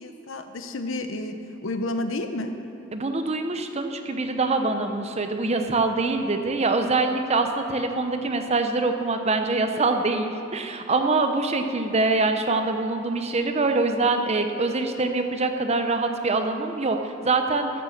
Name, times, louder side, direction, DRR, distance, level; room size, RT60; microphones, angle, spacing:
voice 1, 0.0-2.5, left 2 dB, 90° left, 7 dB, 0.9 m, -31 dB
voice 2, 2.9-17.7, right 3 dB, 35° right, 6 dB, 0.8 m, -24 dB
13.5 x 6.9 x 6.5 m, 2.7 s
head